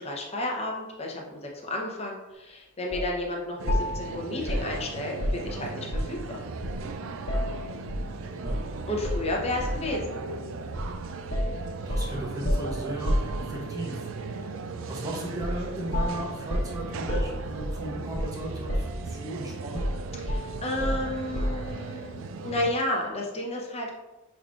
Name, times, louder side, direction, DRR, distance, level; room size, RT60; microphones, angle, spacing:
voice 1, 0.0-5.1 5.4-6.2 8.9-10.0 20.2-23.9, left 1 dB, 30° left, -1 dB, 0.8 m, -32 dB
sound 1, 2.9-3.1 3.7-6.3 6.6-8.1 8.5-8.7 9.0-9.9 10.8-11.0 11.3-13.9 15.4-15.7 15.9-18.4 18.7-19.3 19.8-21.7, equal, 60° left, 1.2 m, -30 dB
sound 2, 3.6-22.7, right 4 dB, 60° right, 0.3 m, -37 dB
voice 2, 11.9-14.6 14.9-19.8, right 1 dB, 15° right, -2 dB, 0.8 m, -36 dB
6.0 x 3.6 x 2.5 m, 1.1 s
head